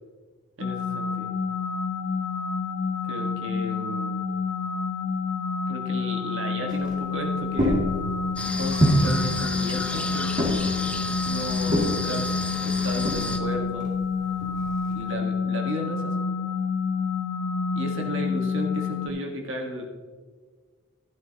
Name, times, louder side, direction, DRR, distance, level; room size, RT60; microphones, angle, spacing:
sound 1, 0.6-19.1, left 5 dB, 70° left, 0.7 m, -28 dB
voice 1, 0.6-1.3 3.1-4.2 5.7-7.8 8.6-10.5 11.2-12.3 12.6-13.9 14.9-16.1 17.7-19.9, equal, 60° right, 1 dB, 1.4 m, -34 dB
sound 2, 6.7-15.0, equal, 35° right, 2.1 m, -28 dB
sound 3, 8.4-13.4, left 2 dB, 5° left, 0.4 m, -32 dB
12.0 x 11.5 x 2.8 m, 1.5 s
head